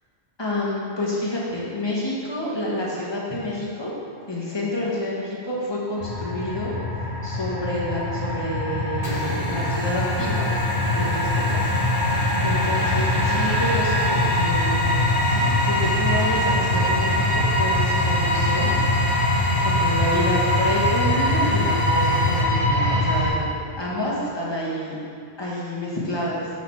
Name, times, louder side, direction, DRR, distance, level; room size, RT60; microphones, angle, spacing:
voice 1, 0.4-3.9 4.3-6.7 7.2-10.5 10.9-11.7 12.1-14.7 15.3-18.7 19.6-25.0 25.4-26.5, left 1 dB, 25° left, -6 dB, 1.5 m, -28 dB
sound 1, 6.0-23.3, left 1 dB, 85° left, 2.2 m, -22 dB
sound 2, 9.0-22.4, left 3 dB, 55° left, 1.2 m, -33 dB
7.7 x 4.0 x 5.7 m, 2.5 s
omnidirectional pair, 1.1 m